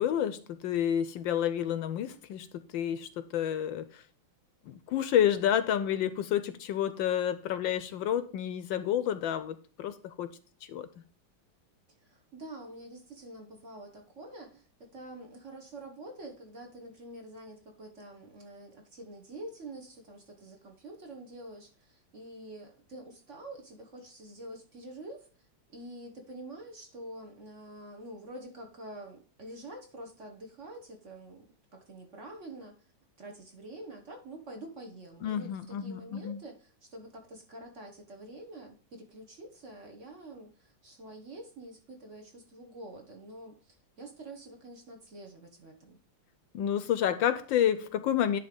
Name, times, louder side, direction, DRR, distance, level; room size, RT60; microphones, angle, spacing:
voice 1, 0.0-4.0 4.7-10.3 10.7-10.9 35.2-36.4 46.5-48.4, left 10 dB, 75° left, 1.3 m, -29 dB
voice 2, 12.0-25.3 25.7-31.4 31.7-32.7 33.2-46.0, right 1 dB, 40° right, 1.4 m, -47 dB
10.0 x 3.4 x 5.2 m
omnidirectional pair, 2.3 m